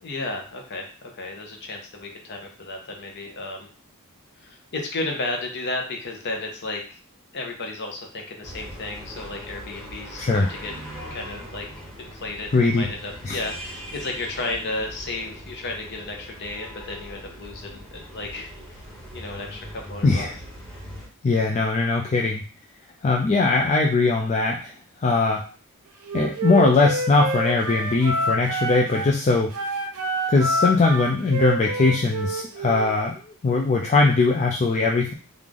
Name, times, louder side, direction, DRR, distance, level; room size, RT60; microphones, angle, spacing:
voice 1, 0.0-3.7 4.4-7.0 7.3-10.7 11.1-11.7 12.0-18.5 19.1-20.3, left 2 dB, 50° left, 2 dB, 0.8 m, -33 dB
sound 1, 8.4-21.1, equal, ahead, 1.0 m, -40 dB
voice 2, 10.2-10.5 12.5-12.9 13.2-13.4 20.0-20.3 21.2-22.4 23.0-24.7 25.0-25.4 26.1-29.7 30.3-35.1, left 3 dB, 30° left, 0 dB, 0.3 m, -20 dB
Wind instrument woodwind instrument, 26.0-29.1 29.5-32.9, right 2 dB, 75° right, 0.6 m, -27 dB
3.2 x 2.5 x 3.6 m, 0.39 s
head